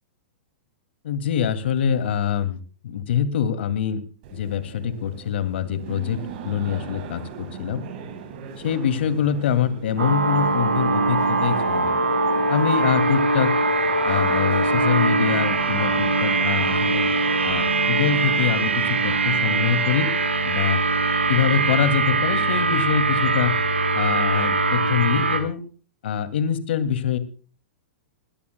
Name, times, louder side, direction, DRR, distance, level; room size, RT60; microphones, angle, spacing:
voice 1, 1.0-2.6 2.8-4.0 4.3-7.8 8.6-11.9 12.5-13.6 14.0-17.1 17.4-20.1 20.4-20.8 21.3-23.5 23.9-25.6 26.0-27.2, left 8 dB, 65° left, 10 dB, 2.4 m, -24 dB
sound 1, 4.2-18.1, right 7 dB, 55° right, 5.7 m, -40 dB
sound 2, 10.0-25.4, right 3 dB, 90° right, 4.3 m, -22 dB
22.0 x 17.0 x 2.2 m, 0.39 s
hypercardioid pair, 115°, 6 cm